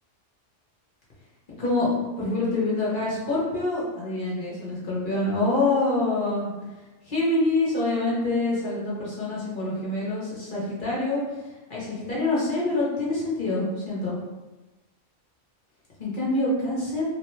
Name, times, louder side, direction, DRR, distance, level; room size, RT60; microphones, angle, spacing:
voice 1, 1.6-6.5 7.0-11.2 11.7-14.2 16.0-17.0, left 2 dB, 45° left, -6 dB, 0.9 m, -26 dB
3.0 x 2.1 x 3.0 m, 1.1 s
omnidirectional pair, 1.3 m